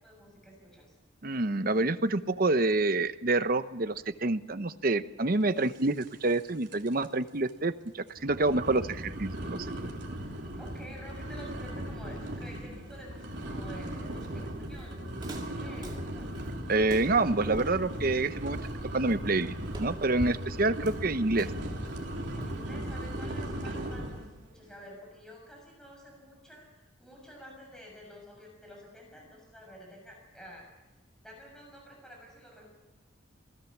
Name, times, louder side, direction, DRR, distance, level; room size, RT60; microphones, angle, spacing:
voice 1, 0.0-0.9 10.6-16.3 22.3-30.6 31.2-32.7, equal, 5° left, -1 dB, 6.6 m, -50 dB
voice 2, 1.2-9.7 16.7-21.5, right 2 dB, 45° right, 11 dB, 0.9 m, -28 dB
sound 1, 6.0-6.4 6.7-7.1 7.5-7.6 8.2-24.3, right 1 dB, 60° right, 3.3 m, -38 dB
Walk footsteps, 14.1-23.4, equal, 20° right, 2.2 m, -44 dB
27.0 x 18.0 x 7.3 m, 1.1 s
head